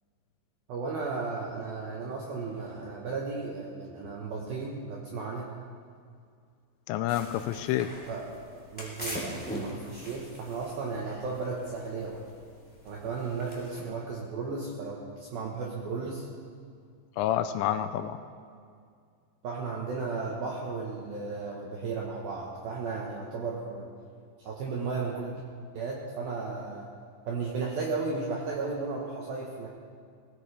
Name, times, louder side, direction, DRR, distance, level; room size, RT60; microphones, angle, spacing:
voice 1, 0.7-5.5 8.1-12.2 12.9-16.2 19.4-23.9 24.4-25.4 25.7-26.9 27.3-29.7, right 4 dB, 70° right, -2 dB, 2.2 m, -35 dB
voice 2, 6.9-7.9 17.2-18.2, left 11 dB, 85° left, 10 dB, 3.0 m, -28 dB
sound 1, 7.1-13.8, equal, 5° left, 2.0 m, -42 dB
19.5 x 16.0 x 3.4 m, 2.2 s
omnidirectional pair, 5.9 m